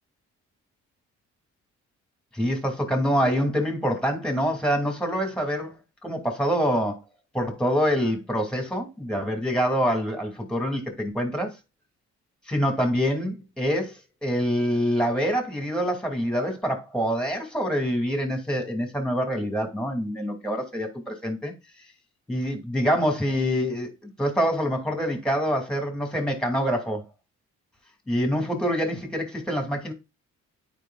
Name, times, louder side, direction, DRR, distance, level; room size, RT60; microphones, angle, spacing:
voice 1, 2.3-7.0 7.3-11.5 12.5-21.5 22.3-27.0 28.1-29.9, equal, 5° left, 2.5 m, -26 dB
9.1 x 4.9 x 2.4 m
cardioid pair, 90°, 30 cm